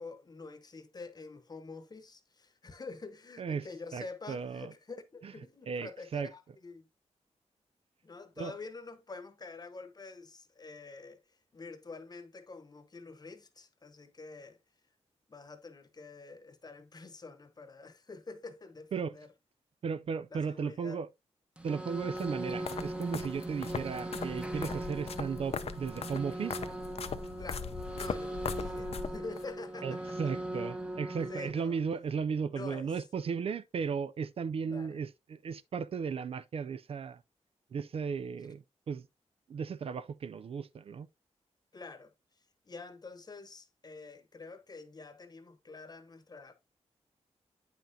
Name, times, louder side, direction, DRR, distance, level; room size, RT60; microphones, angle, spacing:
voice 1, 0.0-6.9 8.0-11.2 11.5-14.6 15.3-19.3 20.3-21.0 27.4-30.2 31.3-31.8 32.5-32.9 34.7-35.0 41.7-42.1 42.7-46.5, left 3 dB, 35° left, 1.0 m, -47 dB
voice 2, 3.9-4.7 5.2-5.3 5.7-6.3 8.4-8.6 18.9-19.2 19.8-21.1 21.6-26.6 29.8-37.2 37.7-39.1 39.5-41.1, right 6 dB, 55° right, 0.4 m, -36 dB
sound 1, 21.6-31.5, right 1 dB, 10° right, 0.8 m, -39 dB
sound 2, 22.2-29.5, left 6 dB, 60° left, 0.6 m, -40 dB
8.7 x 5.7 x 2.7 m
wide cardioid pair, 100°, 12 cm